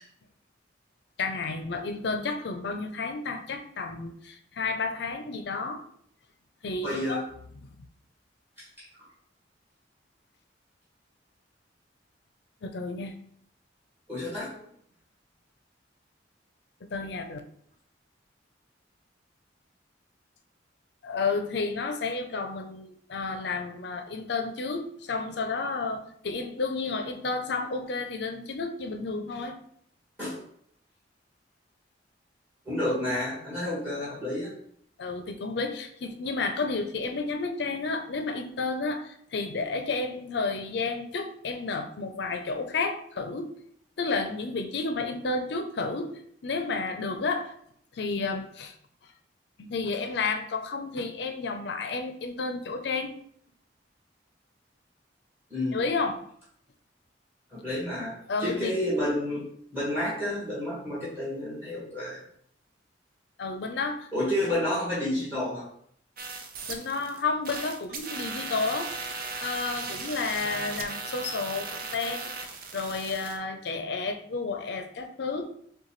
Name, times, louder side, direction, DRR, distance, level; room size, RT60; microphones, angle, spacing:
voice 1, 1.2-5.8 6.6-7.2 7.6-7.7 12.6-13.1 16.9-17.4 21.0-29.6 35.0-43.5 44.0-46.1 46.4-47.5 47.9-48.7 49.6-53.1 55.7-56.2 58.3-58.8 63.4-64.1 66.7-68.9 69.4-72.3 72.7-75.4, left 4 dB, 65° left, 6 dB, 0.5 m, -31 dB
voice 2, 6.8-7.2 14.1-14.6 30.2-30.3 32.6-34.5 55.5-55.8 57.5-58.1 58.4-59.5 59.7-62.2 64.1-65.6, left 1 dB, 15° right, -8 dB, 1.5 m, -30 dB
sound 1, 66.2-67.2 67.5-73.4, right 4 dB, 50° right, 0.6 m, -37 dB
6.4 x 2.3 x 3.1 m, 0.67 s
head